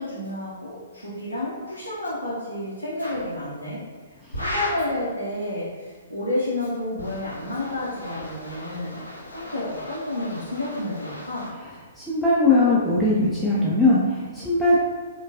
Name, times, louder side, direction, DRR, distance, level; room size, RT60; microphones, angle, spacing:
voice 1, 0.0-3.8 4.3-9.0 9.3-11.5, left 1 dB, 85° right, -8 dB, 0.7 m, -30 dB
sound 1, 3.0-3.3 4.3-4.9 6.8-11.5, left 1 dB, 90° left, 0.8 m, -36 dB
voice 2, 12.0-14.8, left 2 dB, ahead, -9 dB, 0.5 m, -20 dB
4.6 x 2.2 x 2.7 m, 1.4 s
figure-of-eight pair, 120°, 0 cm